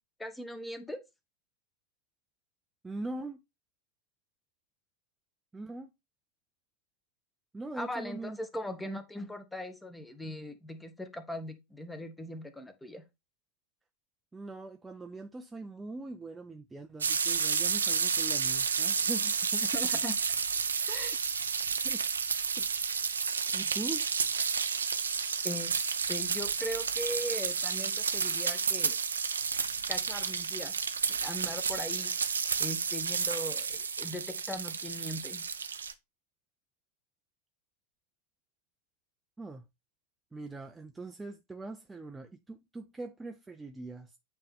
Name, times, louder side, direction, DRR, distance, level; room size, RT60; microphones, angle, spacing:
voice 1, 0.2-1.0 7.7-13.0 19.7-20.2 20.9-21.1 25.4-29.0 29.9-30.8 31.1-32.3 32.6-35.5, left 1 dB, 5° left, 1.0 m, -39 dB
voice 2, 2.8-3.4 5.5-5.9 7.5-8.4 14.3-19.7 21.8-22.0 22.6-22.7 23.5-24.1 39.4-39.6 40.3-44.2, right 2 dB, 10° right, 0.5 m, -42 dB
sound 1, 17.0-35.9, right 6 dB, 75° right, 0.5 m, -31 dB
8.6 x 3.2 x 3.5 m
figure-of-eight pair, 90°, 0 cm